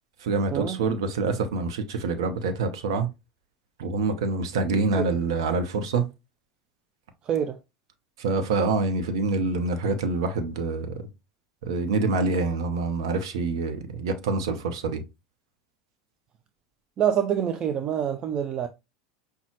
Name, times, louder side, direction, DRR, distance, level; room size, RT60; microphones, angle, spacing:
voice 1, 0.2-3.1 3.8-6.1 8.2-11.0 11.6-15.0, right 3 dB, 70° right, 0.9 m, -26 dB
voice 2, 17.0-18.7, right 9 dB, 35° right, 0.5 m, -26 dB
5.5 x 2.3 x 3.0 m
hypercardioid pair, 80°, 3 cm